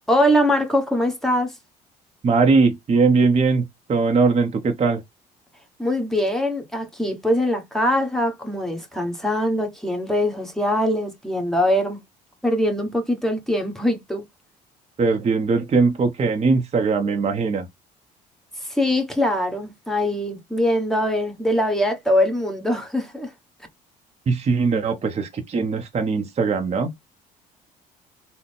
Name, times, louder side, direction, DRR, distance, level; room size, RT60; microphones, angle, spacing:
voice 1, 0.1-1.5 5.8-12.0 12.4-14.2 18.6-23.3, left 1 dB, ahead, 1.4 m, -22 dB
voice 2, 2.2-5.0 15.0-17.7 24.3-26.9, right 4 dB, 30° right, 0.8 m, -20 dB
3.7 x 2.1 x 3.4 m
hypercardioid pair, 60°, 20 cm